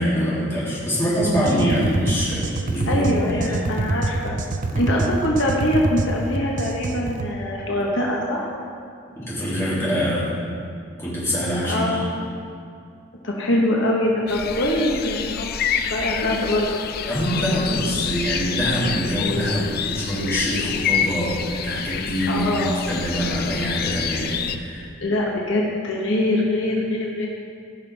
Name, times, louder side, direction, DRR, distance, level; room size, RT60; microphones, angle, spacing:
voice 1, 0.0-3.6 4.7-4.9 9.1-10.4 11.0-12.0 17.0-24.9, equal, 15° left, -9 dB, 2.6 m, -24 dB
sound 1, 1.2-7.3, right 2 dB, 40° right, 0.5 m, -26 dB
voice 2, 2.8-4.4 4.8-8.5 11.7-12.1 13.2-15.5 15.8-16.8 22.3-22.7 25.0-27.3, left 1 dB, 65° left, -2 dB, 1.0 m, -23 dB
sound 2, 14.3-24.6, left 7 dB, 45° left, 0.4 m, -28 dB
15.5 x 6.0 x 3.4 m, 2.3 s
head